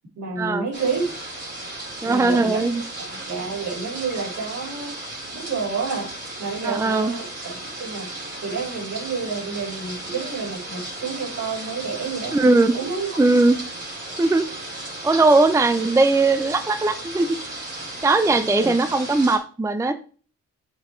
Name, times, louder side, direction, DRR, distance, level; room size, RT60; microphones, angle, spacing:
voice 1, 0.2-1.1 2.0-2.7 3.0-5.0 5.3-6.1 6.4-7.3 7.8-8.1 8.4-12.4 12.7-13.2 18.3-18.7, right 4 dB, 65° right, -2 dB, 3.8 m, -29 dB
sound 1, 0.7-19.4, right 1 dB, 35° right, 4.0 m, -35 dB
voice 2, 2.0-2.8 6.6-7.1 12.3-12.7 13.2-13.6 14.2-14.4 15.0-17.4 18.0-19.9, right 3 dB, 10° right, 11 dB, 0.5 m, -19 dB
7.8 x 7.4 x 3.2 m, 0.40 s
cardioid pair, 90°, 30 cm